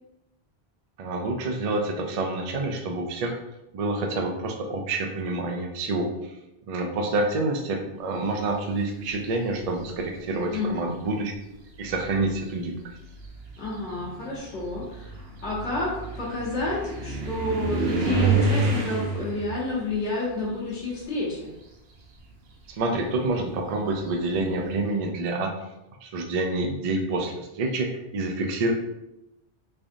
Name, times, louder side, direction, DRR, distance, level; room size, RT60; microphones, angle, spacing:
voice 1, 1.0-3.3 3.7-6.1 6.7-11.3 11.8-12.7 22.7-25.6 26.0-28.7, right 2 dB, 50° right, 2 dB, 0.4 m, -27 dB
sound 1, 9.5-10.0 11.0-11.1 11.7-21.6 21.9-24.5, right 3 dB, 70° right, 0.9 m, -30 dB
voice 2, 10.5-10.9 13.6-21.5, left 2 dB, 90° left, -8 dB, 1.3 m, -30 dB
3.5 x 3.3 x 2.5 m, 0.92 s
omnidirectional pair, 1.1 m